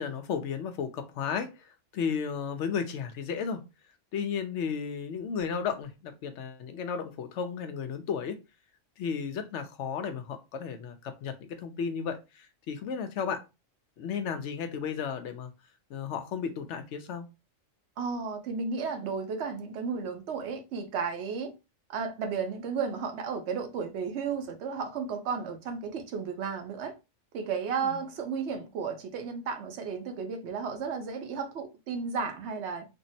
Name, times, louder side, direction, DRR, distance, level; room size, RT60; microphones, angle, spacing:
voice 1, 0.0-3.6 4.1-8.4 9.0-13.4 14.0-15.5 15.9-17.3 27.8-28.0, left 6 dB, 70° left, 0.8 m, -34 dB
voice 2, 18.0-21.5 21.9-26.9 27.3-32.9, right 5 dB, 65° right, 0.8 m, -33 dB
3.5 x 2.0 x 2.5 m
omnidirectional pair, 1.4 m